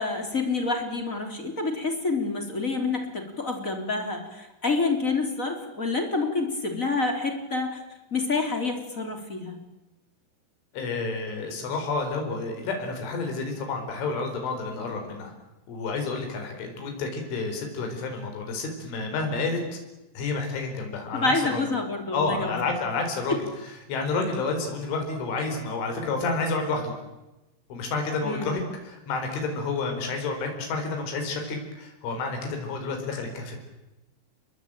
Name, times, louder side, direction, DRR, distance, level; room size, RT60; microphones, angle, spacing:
voice 1, 0.0-7.8 8.1-9.6 21.1-22.6 23.3-23.4 28.2-28.5, left 3 dB, 20° left, 4 dB, 2.9 m, -28 dB
voice 2, 10.7-15.3 15.7-19.8 20.2-21.6 22.1-23.4 23.9-26.9 27.7-33.6, left 3 dB, 80° left, 4 dB, 6.9 m, -30 dB
29.5 x 21.5 x 9.0 m, 1.0 s
omnidirectional pair, 5.4 m